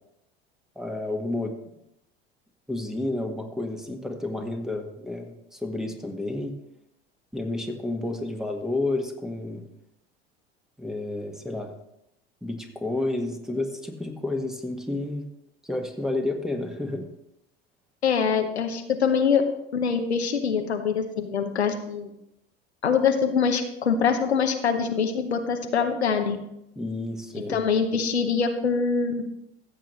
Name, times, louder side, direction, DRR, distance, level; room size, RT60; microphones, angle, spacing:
voice 1, 0.7-1.5 2.7-6.5 7.3-9.6 10.8-11.7 12.4-15.2 15.6-17.1 26.7-27.6, left 2 dB, ahead, 3 dB, 1.6 m, -30 dB
voice 2, 18.0-19.4 19.7-22.1 22.8-26.4 27.5-29.3, left 6 dB, 85° left, 5 dB, 1.0 m, -24 dB
15.0 x 7.7 x 3.2 m, 0.82 s
figure-of-eight pair, 75°, 32 cm